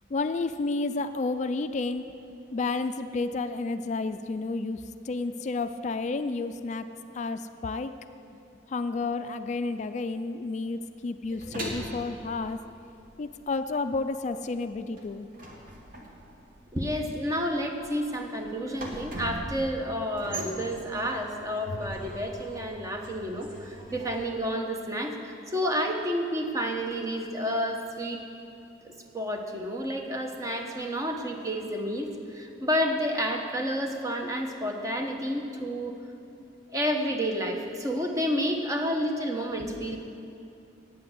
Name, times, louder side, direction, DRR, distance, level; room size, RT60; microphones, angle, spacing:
voice 1, 0.1-2.1 2.5-6.9 7.1-7.9 8.7-12.6 13.2-15.3, left 3 dB, 40° left, 10 dB, 0.3 m, -31 dB
sound 1, 11.3-13.5 13.7-24.3, equal, 50° right, 1.6 m, -40 dB
voice 2, 16.7-28.2 28.8-35.9 36.7-40.0, equal, 20° right, 3 dB, 0.9 m, -30 dB
8.8 x 8.5 x 7.9 m, 2.7 s
head